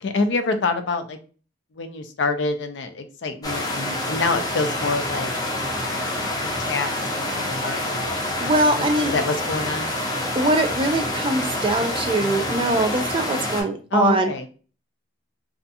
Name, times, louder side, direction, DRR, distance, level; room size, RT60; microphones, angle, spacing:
voice 1, 0.0-1.2 1.7-5.3 6.7-8.1 8.8-9.9 13.9-14.5, left 3 dB, 65° left, 8 dB, 0.4 m, -26 dB
sound 1, 3.4-13.6, left 1 dB, 20° left, 0.6 m, -27 dB
voice 2, 8.4-9.1 10.4-14.3, right 2 dB, 30° right, 6 dB, 0.4 m, -22 dB
2.4 x 2.3 x 2.6 m, 0.38 s
head